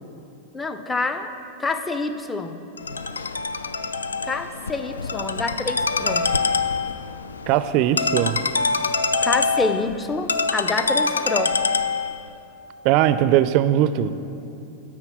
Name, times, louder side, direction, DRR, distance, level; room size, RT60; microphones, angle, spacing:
voice 1, 0.5-1.3 1.6-2.6 4.2-6.3 9.2-11.5, left 3 dB, 15° left, 9 dB, 0.6 m, -27 dB
Ringtone, 2.8-12.3, left 4 dB, 85° left, 0.3 m, -25 dB
voice 2, 7.5-8.4 12.8-14.1, right 11 dB, 50° right, 13 dB, 0.4 m, -19 dB
9.7 x 4.4 x 7.1 m, 2.7 s
hypercardioid pair, 95°, 0 cm